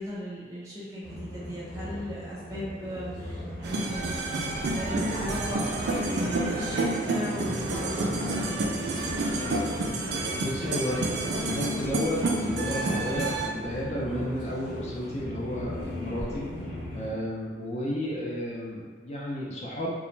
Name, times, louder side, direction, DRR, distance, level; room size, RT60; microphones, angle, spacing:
voice 1, 0.0-4.3 4.7-8.6, equal, 20° right, -8 dB, 0.7 m, -37 dB
sound 1, 1.0-17.1, left 1 dB, 75° left, 0.8 m, -38 dB
sound 2, 3.6-13.5, right 2 dB, 70° right, 0.3 m, -29 dB
voice 2, 10.3-16.5 16.9-19.9, equal, 35° left, -5 dB, 0.4 m, -32 dB
2.4 x 2.0 x 3.0 m, 1.5 s
head